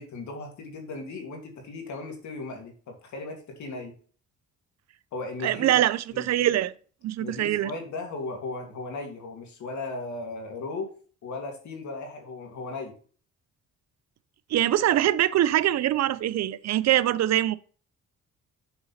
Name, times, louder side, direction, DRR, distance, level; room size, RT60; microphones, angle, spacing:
voice 1, 0.0-3.9 5.1-5.8 6.1-6.5 7.2-10.9 11.2-12.9, left 3 dB, 70° left, 2.4 m, -37 dB
voice 2, 5.4-6.7 7.0-7.7 14.5-17.6, right 13 dB, 60° right, 0.5 m, -23 dB
6.9 x 3.9 x 5.7 m
cardioid pair, 90°, 30 cm